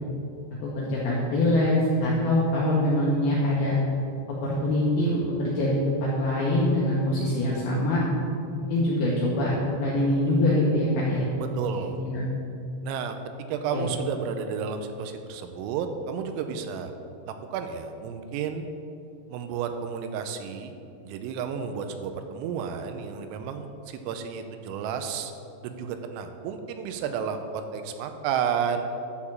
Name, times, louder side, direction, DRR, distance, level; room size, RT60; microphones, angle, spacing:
voice 1, 0.6-3.8 4.4-8.0 8.5-11.3 11.7-12.3 13.7-13.9, left 1 dB, 80° left, -5 dB, 2.2 m, -24 dB
voice 2, 11.4-12.0 12.8-13.2 13.5-16.9 17.5-18.7 19.3-20.7 21.0-25.3 25.6-28.9, right 7 dB, 85° right, 7 dB, 3.2 m, -32 dB
10.5 x 4.9 x 7.2 m, 2.7 s
omnidirectional pair, 6.0 m